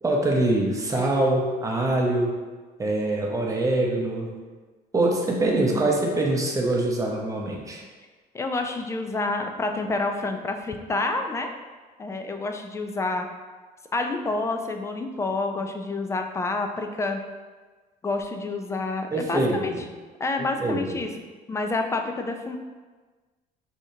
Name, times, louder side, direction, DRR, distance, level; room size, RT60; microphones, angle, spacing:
voice 1, 0.0-2.3 2.8-4.3 4.9-7.8 19.1-19.8 20.6-21.0, right 2 dB, 20° right, -1 dB, 0.7 m, -24 dB
voice 2, 5.4-5.8 8.3-11.5 12.0-13.3 13.9-17.2 18.0-19.7 20.2-21.1 21.5-22.6, left 3 dB, 15° left, 5 dB, 0.4 m, -28 dB
4.7 x 2.8 x 2.7 m, 1.4 s
cardioid pair, 110°, 17 cm